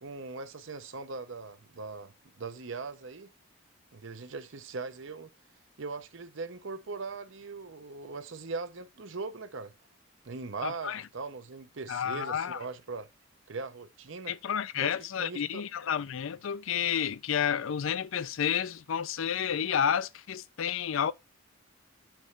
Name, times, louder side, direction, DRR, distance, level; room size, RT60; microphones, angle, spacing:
voice 1, 0.0-3.3 3.9-5.3 5.8-9.7 10.2-13.1 13.5-14.3 14.8-15.6, right 4 dB, 65° right, 0.8 m, -40 dB
voice 2, 10.6-11.0 11.9-12.6 14.3-21.1, left 8 dB, 75° left, 0.4 m, -30 dB
8.9 x 3.1 x 5.3 m
head